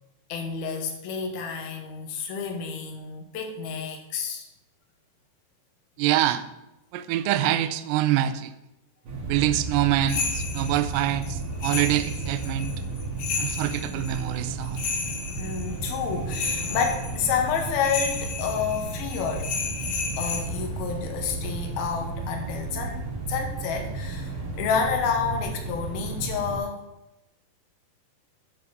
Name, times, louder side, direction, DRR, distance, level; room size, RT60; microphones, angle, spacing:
voice 1, 0.3-4.5 15.4-19.5 20.2-26.8, left 6 dB, 85° left, 3 dB, 2.8 m, -29 dB
voice 2, 6.0-6.5 6.9-8.5 9.3-12.7 13.4-14.9, right 13 dB, 85° right, 11 dB, 1.9 m, -25 dB
sound 1, 9.1-26.6, right 3 dB, 60° right, 3.1 m, -33 dB
sound 2, 10.1-20.4, left 5 dB, 70° left, 2.9 m, -33 dB
10.0 x 3.9 x 5.5 m, 0.91 s
omnidirectional pair, 4.3 m